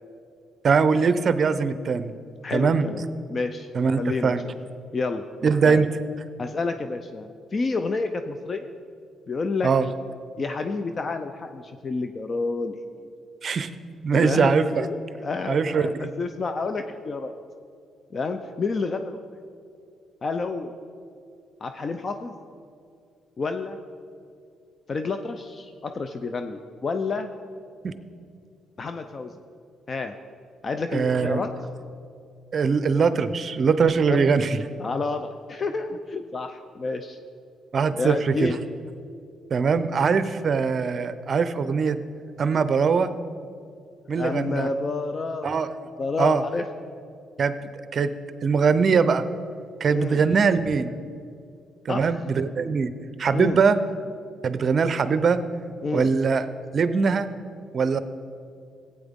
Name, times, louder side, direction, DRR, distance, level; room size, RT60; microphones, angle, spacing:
voice 1, 0.6-2.1 2.5-2.9 3.7-4.5 5.4-5.9 9.6-9.9 13.4-13.7 14.0-14.9 15.5-16.1 27.8-27.9 30.9-31.4 32.5-34.6 37.7-38.5 39.5-42.0 42.4-43.1 44.1-44.7 45.4-45.7 46.2-46.4 47.4-47.5 47.9-48.1 48.4-49.3 49.8-51.0 51.9-52.9 53.2-53.8 54.4-55.4 55.9-56.5 56.7-57.3 57.7-58.0, right 5 dB, 50° right, 12 dB, 0.6 m, -21 dB
voice 2, 2.4-3.0 3.3-3.7 4.0-4.5 4.9-5.2 5.6-5.8 6.4-8.7 9.3-9.7 10.4-13.1 14.1-17.3 18.1-19.2 20.2-20.7 21.6-22.3 23.4-23.8 24.9-27.3 28.8-29.3 29.9-30.1 30.6-31.5 34.1-34.2 34.8-37.2 38.0-38.6 44.1-45.5 46.0-46.6 49.9-50.2 51.9-52.1 53.3-53.6 55.8-56.1, left 3 dB, 40° left, 7 dB, 0.5 m, -29 dB
15.0 x 8.7 x 3.6 m, 2.4 s
cardioid pair, 90°, 0 cm